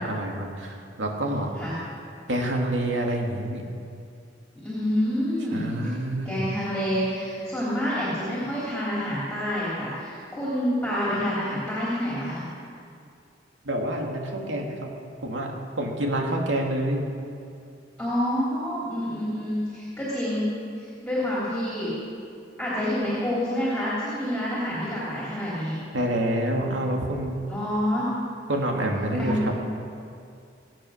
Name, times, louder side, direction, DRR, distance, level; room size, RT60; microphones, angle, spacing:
voice 1, 0.0-1.5 2.3-3.7 5.5-6.4 13.6-14.9 15.2-17.1 25.9-27.4 28.5-29.5, right 1 dB, 85° right, 1 dB, 2.3 m, -27 dB
voice 2, 4.5-5.9 6.2-12.4 18.0-20.5 20.8-21.9 22.6-25.7 27.5-28.1 29.2-29.5, equal, 5° left, -9 dB, 3.3 m, -28 dB
20.5 x 9.0 x 6.5 m, 2.4 s
head